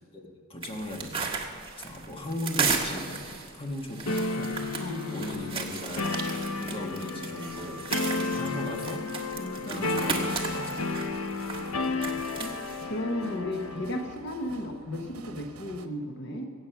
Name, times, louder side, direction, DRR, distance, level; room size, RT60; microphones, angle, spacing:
voice 1, 0.1-4.6 5.1-6.0 6.5-10.8, left 1 dB, 25° left, 2 dB, 1.5 m, -38 dB
sound 1, 0.6-12.8, right 5 dB, 25° right, 1.6 m, -35 dB
sound 2, 4.1-14.1, left 3 dB, 75° left, 0.7 m, -32 dB
voice 2, 4.8-5.1 9.1-9.9 11.8-12.5 12.9-16.5, left 1 dB, 55° left, 3 dB, 1.1 m, -35 dB
sound 3, 10.3-15.9, right 3 dB, 85° right, 0.9 m, -49 dB
22.5 x 8.6 x 5.8 m, 2.3 s
head